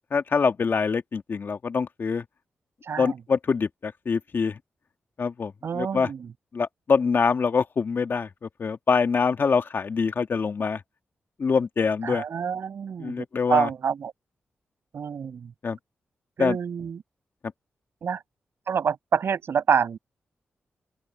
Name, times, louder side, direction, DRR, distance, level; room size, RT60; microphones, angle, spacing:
voice 1, 0.1-2.2 3.0-4.6 5.2-6.1 6.5-8.3 8.6-10.8 11.4-12.2 13.0-13.7 15.6-15.8 16.4-16.6, left 5 dB, 55° left, 1.9 m, -24 dB
voice 2, 2.8-3.2 5.6-6.3 12.0-14.1 14.9-15.5 16.4-17.0 18.0-18.2 18.7-20.0, right 7 dB, 70° right, 6.3 m, -27 dB
open air
cardioid pair, 60°, 4 cm